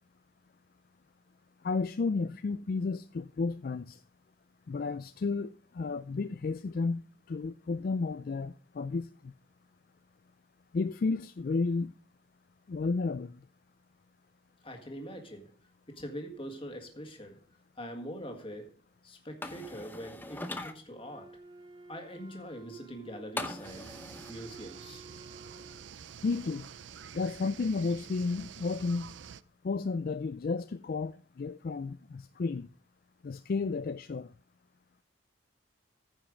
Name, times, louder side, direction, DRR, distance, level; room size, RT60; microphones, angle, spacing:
voice 1, 1.6-4.0 4.7-9.3 10.7-11.9 12.7-13.4 26.2-26.7 27.1-29.1 29.6-32.7 33.2-34.3, left 4 dB, 50° left, 0.4 m, -32 dB
voice 2, 14.6-15.5 15.9-17.4 17.8-18.8 19.0-21.4 21.9-24.0 24.3-25.0, equal, 30° left, 1.8 m, -43 dB
sound 1, 19.4-20.7 23.4-24.3, left 2 dB, 10° left, 0.8 m, -40 dB
Wind instrument woodwind instrument, 20.9-25.9, right 3 dB, 25° right, 0.8 m, -53 dB
sound 2, 23.6-29.4, right 8 dB, 70° right, 0.5 m, -48 dB
14.5 x 5.6 x 5.1 m
head